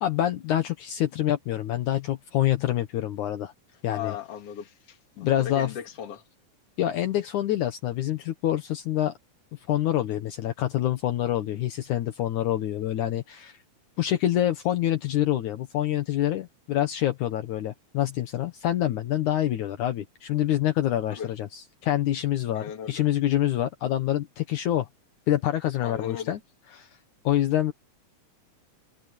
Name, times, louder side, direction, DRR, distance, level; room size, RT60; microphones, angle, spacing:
voice 1, 0.0-3.5 3.8-4.2 5.2-5.7 6.8-9.1 9.5-13.6 14.0-24.9 25.3-26.4 26.7-26.9 27.2-27.7, left 12 dB, 70° left, 2.6 m, -26 dB
voice 2, 3.9-6.2 21.1-21.3 22.5-23.0 25.8-26.3, left 9 dB, 50° left, 2.9 m, -37 dB
open air
omnidirectional pair, 3.7 m